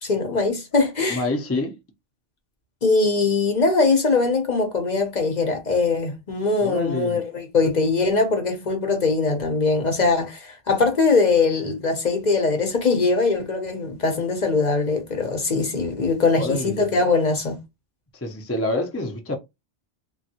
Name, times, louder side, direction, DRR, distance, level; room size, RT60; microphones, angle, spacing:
voice 1, 0.0-1.2 2.8-17.6, left 3 dB, 45° left, 0.7 m, -21 dB
voice 2, 1.1-1.8 6.6-7.2 16.3-16.9 18.1-19.3, left 2 dB, 20° left, 0.4 m, -27 dB
3.3 x 2.3 x 2.7 m
omnidirectional pair, 1.2 m